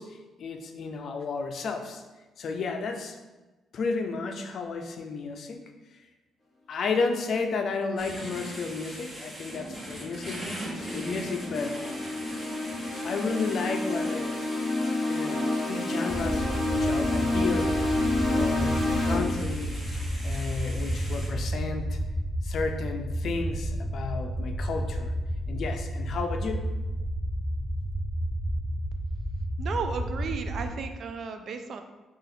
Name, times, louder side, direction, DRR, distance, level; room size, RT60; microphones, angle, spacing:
voice 1, 0.0-2.0 2.4-3.2 3.7-5.6 6.7-11.8 13.0-14.4 15.1-17.7 18.3-19.7 20.2-22.0 22.4-25.1 25.5-26.7, left 4 dB, 60° left, 5 dB, 0.4 m, -32 dB
sound 1, 8.0-21.3, equal, 20° right, 1.4 m, -41 dB
sound 2, 10.1-19.2, left 2 dB, 30° left, 1.3 m, -29 dB
sound 3, 16.1-30.7, equal, 5° left, 0.5 m, -31 dB
voice 2, 29.6-31.8, right 5 dB, 60° right, 7 dB, 0.4 m, -34 dB
3.8 x 2.4 x 4.2 m, 1.2 s
cardioid pair, 90°, 0 cm